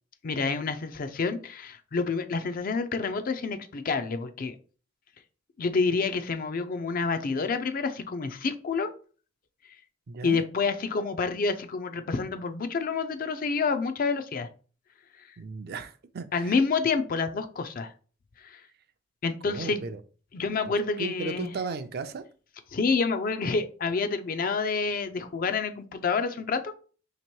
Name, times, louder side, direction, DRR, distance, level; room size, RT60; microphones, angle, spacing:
voice 1, 0.2-4.6 5.6-8.9 10.2-14.5 16.3-17.9 18.4-18.6 19.2-19.9 20.3-21.5 22.7-26.7, left 4 dB, 45° left, 9 dB, 0.4 m, -28 dB
voice 2, 10.1-10.4 15.4-16.6 19.4-20.0 20.6-20.7 21.0-22.3, right 4 dB, 50° right, 10 dB, 0.4 m, -36 dB
2.9 x 2.9 x 4.5 m, 0.39 s
head